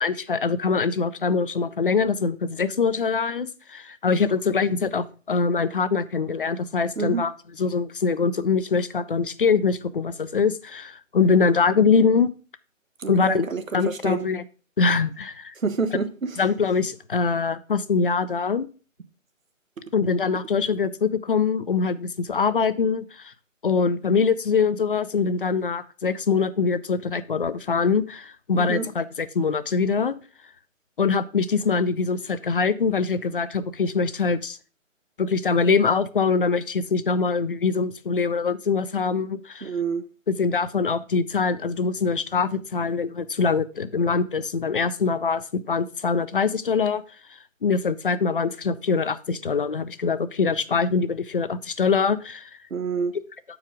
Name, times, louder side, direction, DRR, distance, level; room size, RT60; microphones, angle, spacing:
voice 1, 0.0-7.3 7.6-12.3 13.1-13.5 13.7-14.4 14.8-15.5 16.4-18.7 19.9-23.3 23.6-30.2 31.0-34.6 35.2-39.7 40.3-47.0 47.6-52.5, left 5 dB, 45° left, 0.5 m, -23 dB
voice 2, 13.0-14.3 15.6-16.4 28.5-28.9 39.6-40.0 52.7-53.1, right 5 dB, 90° right, 1.0 m, -28 dB
7.1 x 4.8 x 4.9 m
figure-of-eight pair, 150°, 39 cm